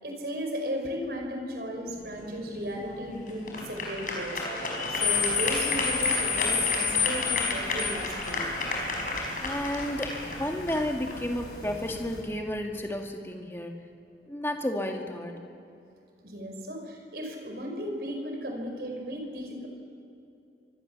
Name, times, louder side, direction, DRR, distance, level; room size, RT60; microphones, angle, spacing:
voice 1, 0.0-8.6 16.2-19.7, equal, 60° right, 2 dB, 5.1 m, -35 dB
sound 1, 1.9-12.0, left 2 dB, 50° left, 5.1 m, -33 dB
sound 2, 5.0-12.2, left 6 dB, 75° left, 5.9 m, -32 dB
voice 2, 9.4-13.8 14.3-15.3, left 1 dB, 15° left, 2 dB, 1.9 m, -32 dB
28.5 x 24.5 x 7.2 m, 2.7 s
head